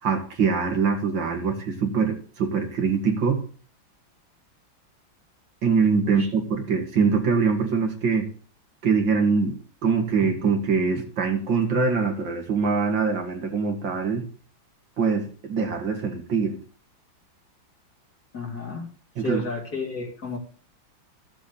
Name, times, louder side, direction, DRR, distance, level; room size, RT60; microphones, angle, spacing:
voice 1, 0.0-3.4 5.6-8.3 8.8-14.3 15.0-16.6 19.2-19.4, right 5 dB, 70° right, 2.4 m, -23 dB
voice 2, 18.3-18.9 19.2-20.4, left 4 dB, 50° left, 3.6 m, -32 dB
15.5 x 7.3 x 3.2 m
omnidirectional pair, 2.1 m